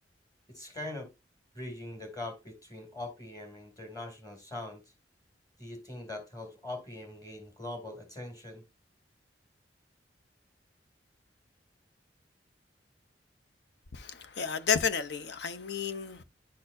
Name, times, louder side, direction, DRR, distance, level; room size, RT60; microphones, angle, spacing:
voice 1, 0.5-1.1 1.5-4.8 5.6-8.6, left 2 dB, 20° left, 2.3 m, -42 dB
voice 2, 13.9-16.2, left 6 dB, 70° left, 0.7 m, -31 dB
10.5 x 4.3 x 2.6 m
head